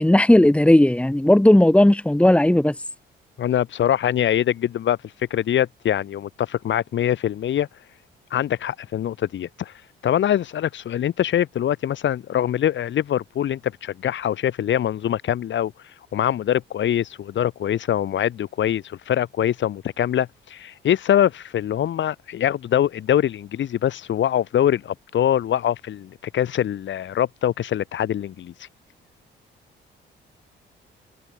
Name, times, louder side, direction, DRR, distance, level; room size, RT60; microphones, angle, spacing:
voice 1, 0.0-2.7, left 1 dB, 5° left, 2.9 m, -15 dB
voice 2, 3.4-5.0 5.3-7.7 8.3-9.7 10.0-15.7 16.1-28.5, left 10 dB, 70° left, 8.0 m, -23 dB
cardioid pair, 90°, 20 cm